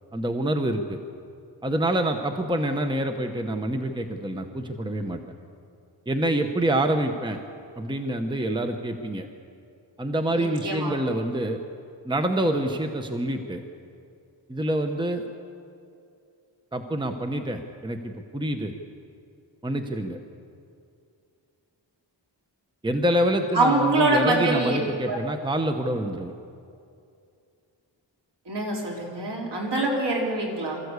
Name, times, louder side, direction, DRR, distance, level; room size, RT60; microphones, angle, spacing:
voice 1, 0.1-1.0 1.6-5.2 6.1-7.4 7.8-9.3 10.0-11.6 12.0-13.6 14.5-15.2 16.7-18.7 19.6-20.2 22.8-26.3, right 1 dB, 10° right, 5 dB, 1.0 m, -26 dB
voice 2, 10.3-11.0 23.5-24.8 25.1-25.2 28.5-30.8, right 2 dB, 65° right, -2 dB, 4.3 m, -24 dB
23.0 x 14.5 x 8.2 m, 2.5 s
wide cardioid pair, 130°, 45 cm